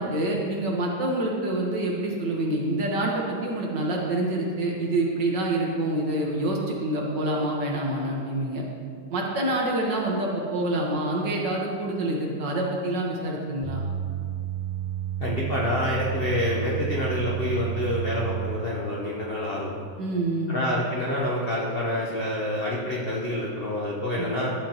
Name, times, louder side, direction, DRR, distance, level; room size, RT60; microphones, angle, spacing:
voice 1, 0.0-8.6 9.1-13.8 20.0-20.6 24.2-24.3, right 1 dB, 55° right, -2 dB, 1.8 m, -27 dB
sound 1, 13.6-18.5, right 10 dB, 85° right, 2.8 m, -31 dB
voice 2, 15.2-19.8 20.5-24.5, left 1 dB, 65° left, -4 dB, 0.5 m, -27 dB
12.5 x 8.2 x 2.9 m, 2.1 s
omnidirectional pair, 2.4 m